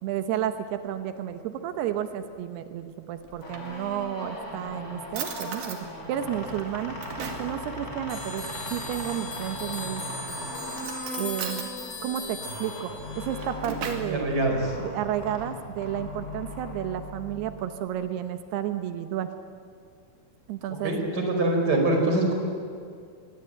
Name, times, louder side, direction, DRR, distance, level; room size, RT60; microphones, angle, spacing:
voice 1, 0.0-5.8 6.1-7.0 7.4-8.5 8.7-10.0 11.1-11.7 12.0-14.3 14.8-19.3 20.5-20.9, right 10 dB, 85° right, 8 dB, 3.1 m, -32 dB
Drawer open or close, 3.2-4.2 4.7-4.8 5.1-5.8 6.4-7.5 9.4-10.0 10.7-11.7 13.1-14.2, right 6 dB, 70° right, 3.8 m, -38 dB
sound 1, 3.3-17.9, left 1 dB, 15° left, 5.9 m, -38 dB
sound 2, 8.1-13.3, left 3 dB, 55° left, 9.4 m, -39 dB
voice 2, 14.0-14.6 20.8-22.3, right 2 dB, 25° right, 2 dB, 5.0 m, -24 dB
25.5 x 21.0 x 8.9 m, 2.2 s
omnidirectional pair, 4.5 m